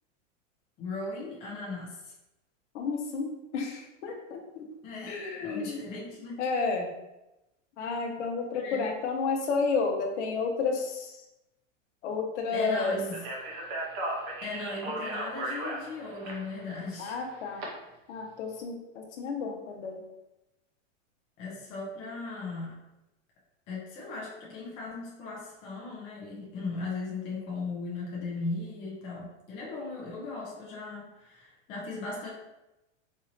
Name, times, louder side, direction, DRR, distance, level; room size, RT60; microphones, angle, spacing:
voice 1, 0.8-2.1 4.8-6.5 8.5-9.0 12.5-13.2 14.4-17.2 17.5-17.9 21.4-22.8 23.7-32.3, left 3 dB, 15° left, -4 dB, 0.3 m, -38 dB
voice 2, 2.7-4.7 5.1-5.8 6.4-6.9 7.8-11.1 12.0-13.0 17.0-17.6 18.1-20.0, left 4 dB, 65° left, 2 dB, 0.9 m, -31 dB
Speech, 13.1-17.6, right 1 dB, 40° right, 0.8 m, -36 dB
4.2 x 2.7 x 2.6 m, 0.94 s
supercardioid pair, 150°, 38 cm